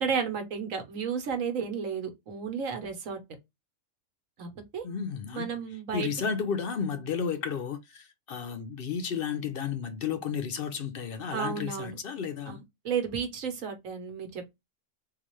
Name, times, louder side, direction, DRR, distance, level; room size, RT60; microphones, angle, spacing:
voice 1, 0.0-3.2 4.4-4.8 5.3-6.1 11.3-12.0 12.5-14.5, right 6 dB, 80° right, 1.3 m, -33 dB
voice 2, 4.8-5.5 5.9-12.6, left 6 dB, 60° left, 0.6 m, -32 dB
3.9 x 2.4 x 3.0 m
omnidirectional pair, 1.3 m